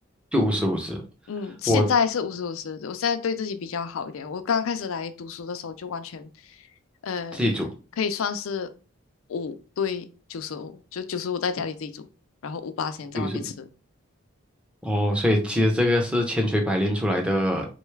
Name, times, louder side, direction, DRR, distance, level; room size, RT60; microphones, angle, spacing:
voice 1, 0.3-1.0 1.7-1.8 7.3-7.7 13.1-13.3 14.8-17.7, left 1 dB, 5° right, 0.6 m, -23 dB
voice 2, 1.3-6.6 7.0-7.4 8.0-8.7 9.3-10.0 10.3-12.0 12.4-13.7 15.5-15.6, left 6 dB, 80° left, 0.4 m, -29 dB
3.8 x 2.3 x 3.2 m
head